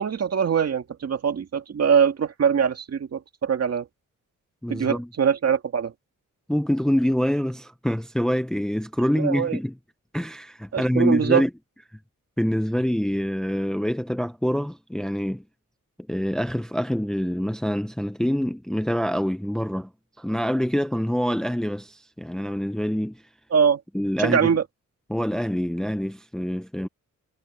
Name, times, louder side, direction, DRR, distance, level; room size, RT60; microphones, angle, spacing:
voice 1, 0.0-3.9 4.7-5.9 9.1-9.6 10.7-11.4 23.5-23.8 24.2-24.6, right 7 dB, 50° right, 2.2 m, -22 dB
voice 2, 4.6-5.1 6.5-9.7 10.1-11.5 12.4-15.4 16.1-19.9 20.2-23.2 23.9-24.5 25.1-26.9, equal, ahead, 0.7 m, -25 dB
wide cardioid pair, 175°, 32 cm